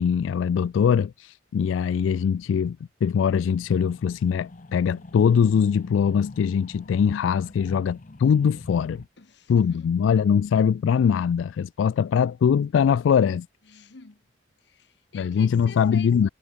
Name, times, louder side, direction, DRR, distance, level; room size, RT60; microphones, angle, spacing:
voice 1, 0.0-9.0 9.5-13.5 15.1-16.3, left 7 dB, 85° left, 0.3 m, -22 dB
sound 1, 3.6-9.1, left 2 dB, 40° left, 0.7 m, -44 dB
voice 2, 9.2-9.9 13.6-14.2 14.6-16.3, left 5 dB, 65° left, 1.0 m, -47 dB
head